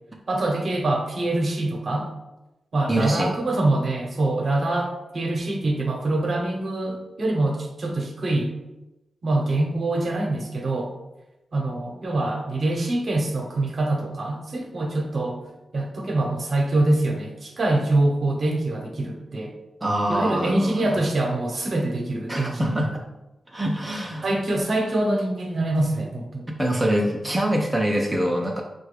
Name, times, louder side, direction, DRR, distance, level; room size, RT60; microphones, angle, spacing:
voice 1, 0.3-2.1 2.7-8.5 9.2-10.9 11.5-15.4 15.7-19.5 20.1-23.0 24.2-26.4, right 2 dB, 50° right, 1 dB, 0.8 m, -24 dB
voice 2, 2.9-3.3 19.8-21.0 22.3-23.0 23.5-24.3 26.6-28.6, right 1 dB, 10° right, -1 dB, 0.5 m, -24 dB
5.1 x 2.3 x 3.2 m, 0.97 s
wide cardioid pair, 105°, 0 cm